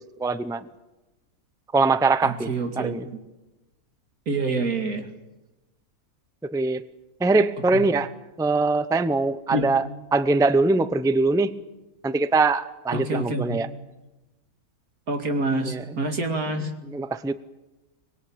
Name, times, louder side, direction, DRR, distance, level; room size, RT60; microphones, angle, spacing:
voice 1, 0.2-0.7 1.7-3.0 6.4-6.8 7.2-8.1 8.4-11.6 12.0-13.7 15.6-15.8 16.9-17.3, right 3 dB, 5° right, 12 dB, 0.5 m, -22 dB
voice 2, 2.2-3.0 4.3-5.0 9.5-9.7 12.9-13.6 15.1-16.8, right 2 dB, 80° right, 5 dB, 2.8 m, -27 dB
25.0 x 20.5 x 8.8 m, 1.0 s
omnidirectional pair, 1.5 m